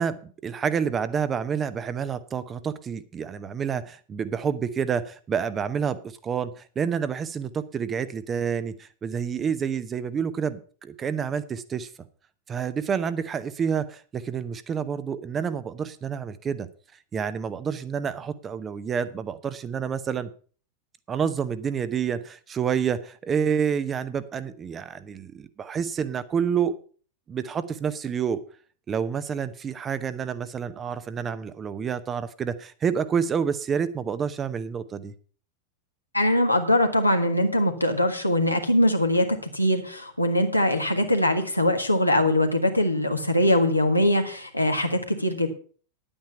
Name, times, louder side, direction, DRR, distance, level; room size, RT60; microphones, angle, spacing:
voice 1, 0.0-11.9 12.5-16.7 17.1-20.3 21.1-26.8 27.3-28.4 28.9-35.1, right 7 dB, 25° right, 13 dB, 0.8 m, -28 dB
voice 2, 36.1-39.3 39.5-45.5, left 1 dB, 85° left, 4 dB, 1.6 m, -22 dB
10.5 x 8.9 x 5.6 m, 0.41 s
figure-of-eight pair, 90°, 0 cm